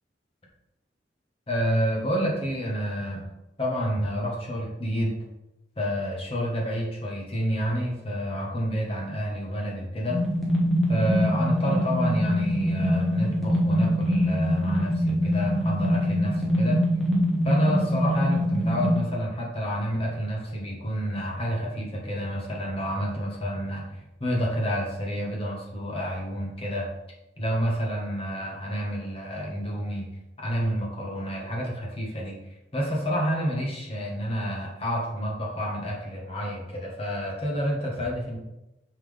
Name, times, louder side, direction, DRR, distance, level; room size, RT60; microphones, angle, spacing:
voice 1, 1.5-3.3 3.6-5.2 5.8-10.2 10.9-16.8 17.4-26.9 27.4-30.1 30.4-32.4 32.7-38.4, equal, 35° left, -2 dB, 1.6 m, -29 dB
sound 1, 10.1-19.0, equal, ahead, 1.3 m, -24 dB
5.9 x 5.8 x 3.5 m, 0.95 s
head